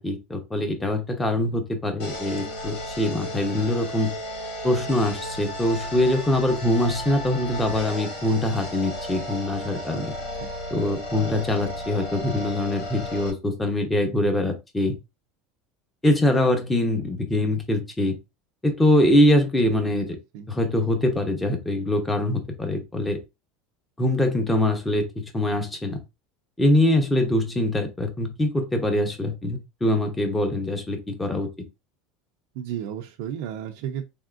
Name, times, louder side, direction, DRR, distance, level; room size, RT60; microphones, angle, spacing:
voice 1, 0.0-4.2 4.6-10.1 10.7-15.0 16.0-18.2 18.6-20.2 20.5-23.2 24.0-25.1 25.3-26.0 26.6-31.5, left 1 dB, 10° left, 0.7 m, -23 dB
sound 1, 2.0-13.3, left 1 dB, 75° left, 2.3 m, -34 dB
voice 2, 20.1-20.5 32.5-34.0, right 9 dB, 65° right, 0.5 m, -33 dB
3.5 x 3.5 x 2.4 m
supercardioid pair, 160°, 0 cm